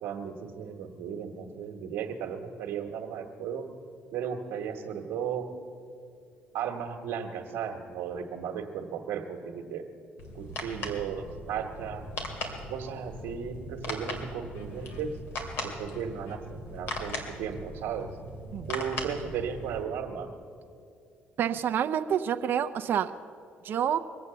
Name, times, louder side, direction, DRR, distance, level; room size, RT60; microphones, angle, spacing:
voice 1, 0.0-3.6 4.1-5.5 6.5-9.8 10.3-12.1 12.7-15.1 15.6-18.1 18.7-20.3, right 7 dB, 90° right, -1 dB, 1.3 m, -35 dB
sound 1, 10.2-19.8, left 1 dB, 70° left, 2.4 m, -39 dB
voice 2, 21.4-23.1 23.6-24.0, right 9 dB, 60° right, 9 dB, 0.6 m, -28 dB
22.5 x 8.0 x 6.8 m, 2.5 s
supercardioid pair, 75°, 4 cm